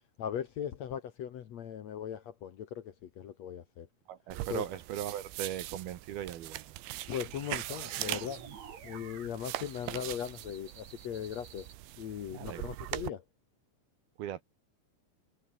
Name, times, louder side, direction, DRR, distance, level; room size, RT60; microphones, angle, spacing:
voice 1, 0.2-3.9 4.5-4.6 7.1-8.4 8.8-11.7 12.0-13.2, left 9 dB, 75° left, 1.5 m, -39 dB
voice 2, 4.1-6.8 12.3-12.7 14.2-14.4, right 11 dB, 65° right, 2.9 m, -39 dB
sound 1, 4.3-13.1, right 16 dB, 85° right, 3.6 m, -41 dB
sound 2, 7.3-11.7, right 7 dB, 40° right, 3.4 m, -50 dB
omnidirectional pair, 5.2 m